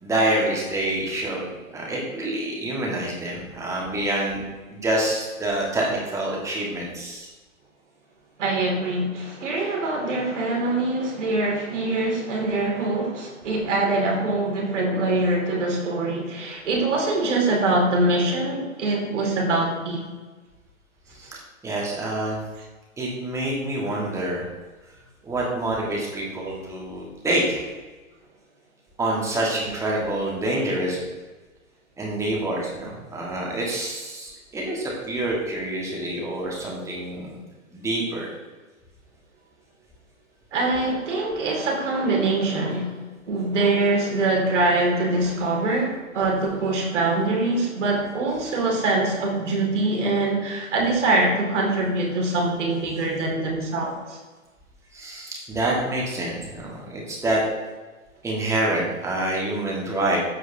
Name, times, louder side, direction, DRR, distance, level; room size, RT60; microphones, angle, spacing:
voice 1, 0.0-4.4 4.7-7.3 21.1-22.4 23.0-24.4 25.2-27.6 29.0-31.0 32.0-37.4 37.7-38.3 54.9-57.4 58.2-60.2, right 1 dB, 5° right, -3 dB, 1.5 m, -27 dB
voice 2, 8.4-20.0 40.5-43.0 43.3-54.2, right 2 dB, 60° right, -1 dB, 2.4 m, -23 dB
13.5 x 4.7 x 2.7 m, 1.3 s
figure-of-eight pair, 125°, 41 cm